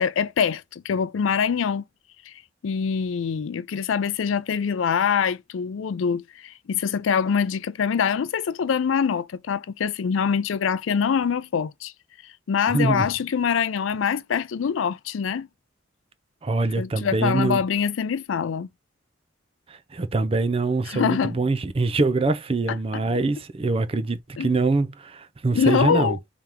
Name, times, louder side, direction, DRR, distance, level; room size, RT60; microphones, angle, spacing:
voice 1, 0.0-1.8 2.3-2.4 2.6-11.9 12.2-15.5 16.8-18.7 20.9-21.4 22.9-23.0 24.4-24.5 25.5-26.2, left 7 dB, 85° left, 0.4 m, -24 dB
voice 2, 12.7-13.1 16.4-17.6 19.7-26.2, right 3 dB, 30° right, 0.4 m, -24 dB
3.4 x 3.0 x 3.5 m
head